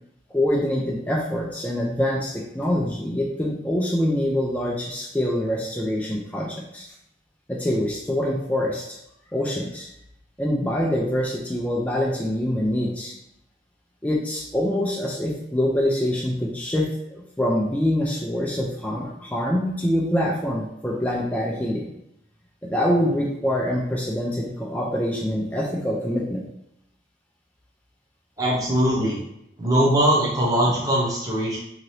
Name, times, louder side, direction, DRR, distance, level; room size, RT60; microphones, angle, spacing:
voice 1, 0.3-6.9 7.5-9.0 9.3-9.9 10.4-13.1 14.0-21.9 22.6-26.4, left 1 dB, 10° left, -2 dB, 0.3 m, -25 dB
voice 2, 28.4-29.2 29.6-31.6, right 1 dB, 20° right, -5 dB, 0.8 m, -21 dB
2.8 x 2.6 x 3.1 m, 0.79 s
head